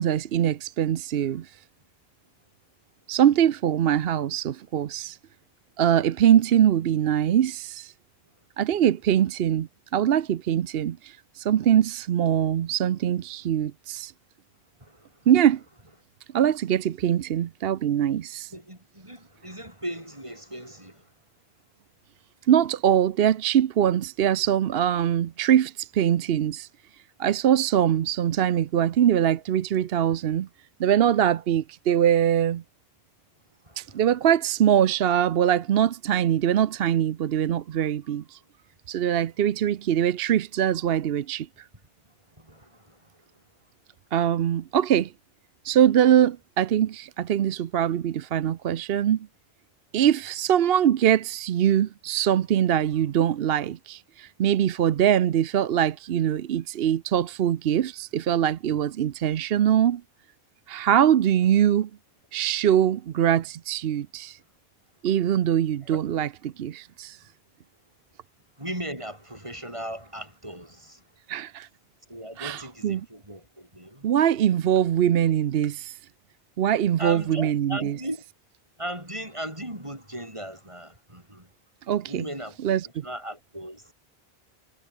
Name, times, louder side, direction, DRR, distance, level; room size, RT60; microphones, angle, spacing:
voice 1, 0.0-1.6 3.1-5.2 5.8-7.9 8.6-14.1 15.3-15.6 16.3-18.5 22.5-26.7 27.2-30.5 30.8-32.6 33.8-38.4 38.9-41.7 44.1-45.1 45.6-49.3 49.9-60.0 60.7-61.9 62.3-64.4 65.0-67.2 71.3-71.7 72.4-73.1 74.0-76.0 76.6-78.0 81.9-82.3 82.6-83.0, right 10 dB, 70° right, 0.9 m, -23 dB
voice 2, 14.8-15.1 18.5-21.1 33.6-34.0 42.4-43.0 65.8-66.0 68.6-71.0 72.1-74.0 77.0-78.2 78.8-81.5 82.1-82.6 83.0-83.9, right 1 dB, 30° right, 6.2 m, -37 dB
omnidirectional pair, 1.0 m